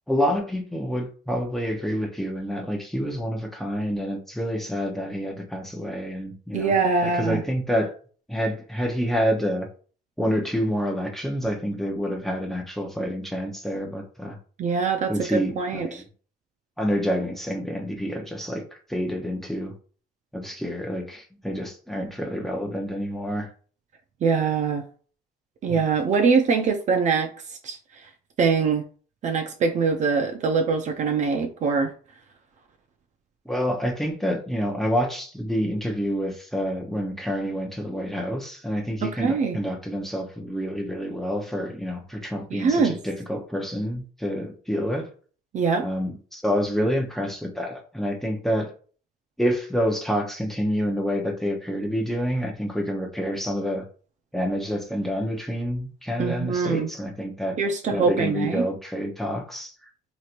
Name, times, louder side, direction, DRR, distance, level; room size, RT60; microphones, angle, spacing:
voice 1, 0.1-6.7 7.0-7.9 8.3-9.7 10.2-14.4 15.1-16.0 16.8-18.6 18.9-19.7 20.3-23.5 25.7-25.8 33.5-45.1 45.8-48.7 49.4-53.8 54.3-57.6 57.9-59.7, equal, ahead, 0.7 m, -28 dB
voice 2, 6.5-7.4 14.6-16.0 24.2-24.8 25.6-27.8 28.4-28.8 29.2-31.9 39.0-39.6 42.5-43.0 45.5-45.9 56.2-56.9 57.6-58.7, right 5 dB, 45° right, 0.4 m, -23 dB
3.1 x 2.9 x 2.5 m
cardioid pair, 110°, 17 cm